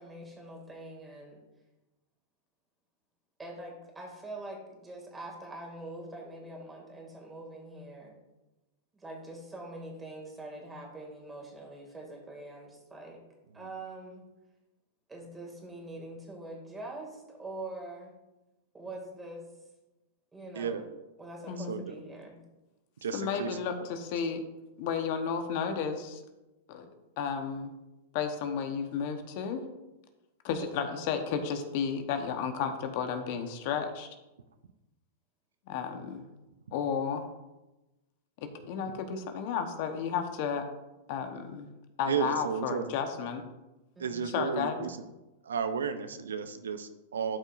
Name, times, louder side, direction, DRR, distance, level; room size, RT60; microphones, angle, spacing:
voice 1, 0.0-1.4 3.4-8.2 8.9-13.2 13.5-14.2 15.1-18.1 18.7-19.5 20.3-20.8 21.2-22.4 30.6-31.0 44.0-44.4, right 2 dB, 15° right, 0 dB, 2.3 m, -44 dB
voice 2, 21.5-21.8 23.1-24.4 24.8-26.2 26.7-26.8 27.2-27.7 28.1-29.6 30.4-34.1 35.7-36.2 36.7-37.2 38.4-40.6 41.1-41.7 42.0-43.4 44.3-44.9, left 6 dB, 55° left, 6 dB, 1.0 m, -32 dB
voice 3, 23.0-23.7 38.9-39.0 42.1-42.9 44.0-45.0 45.4-47.4, right 6 dB, 85° right, 10 dB, 0.6 m, -33 dB
12.5 x 5.4 x 2.6 m, 1.0 s
hypercardioid pair, 115°, 0 cm